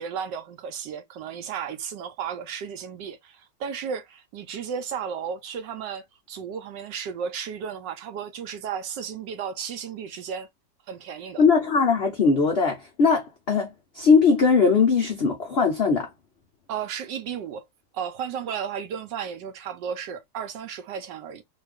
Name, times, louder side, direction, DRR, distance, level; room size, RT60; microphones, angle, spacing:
voice 1, 0.0-10.5 10.9-11.4 16.7-17.7 17.9-21.4, right 7 dB, 75° right, 1.3 m, -34 dB
voice 2, 11.4-13.7 13.9-16.1, left 5 dB, 65° left, 0.6 m, -20 dB
3.2 x 2.4 x 3.4 m
omnidirectional pair, 2.0 m